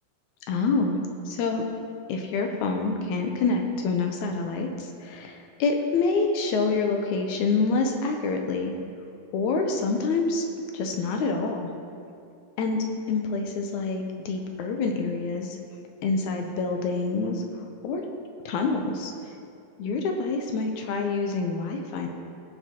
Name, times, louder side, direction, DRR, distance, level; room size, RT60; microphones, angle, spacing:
voice 1, 0.5-1.0 1.3-1.6 2.1-8.7 9.3-10.4 10.7-11.7 12.6-15.6 16.0-17.4 17.8-18.0 18.5-19.1 19.8-22.1, left 4 dB, 75° left, 3 dB, 1.8 m, -27 dB
21.5 x 7.2 x 2.9 m, 2.5 s
omnidirectional pair, 4.2 m